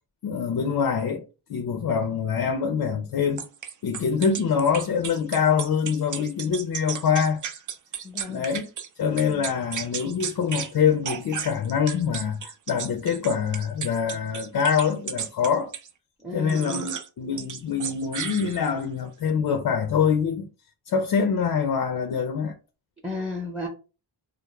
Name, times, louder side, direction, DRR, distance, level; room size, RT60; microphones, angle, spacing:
voice 1, 0.2-1.2 1.5-3.5 3.8-7.4 8.3-8.7 9.0-15.7 16.3-20.5 20.9-22.5, left 6 dB, 50° left, 0.4 m, -25 dB
sound 1, 3.4-8.9 9.2-10.7 11.0-15.9 16.5-17.1 17.4-18.8, right 7 dB, 45° right, 0.4 m, -34 dB
voice 2, 8.0-8.5 16.2-16.9 23.0-23.7, left 2 dB, ahead, 0.7 m, -33 dB
2.2 x 2.0 x 3.0 m
cardioid pair, 70°, 47 cm